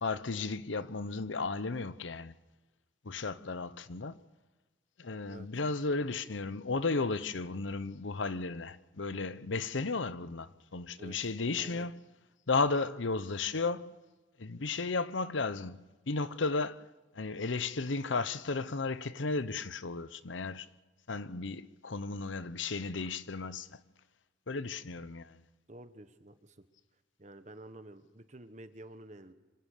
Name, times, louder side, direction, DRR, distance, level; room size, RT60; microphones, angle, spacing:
voice 1, 0.0-2.3 3.0-4.2 5.0-12.0 12.5-13.9 14.4-16.8 17.1-20.7 21.1-23.7 24.5-25.4, left 3 dB, 85° left, 0.9 m, -34 dB
voice 2, 25.7-26.7 27.2-29.3, right 1 dB, 40° right, 1.3 m, -50 dB
26.0 x 16.5 x 6.7 m
head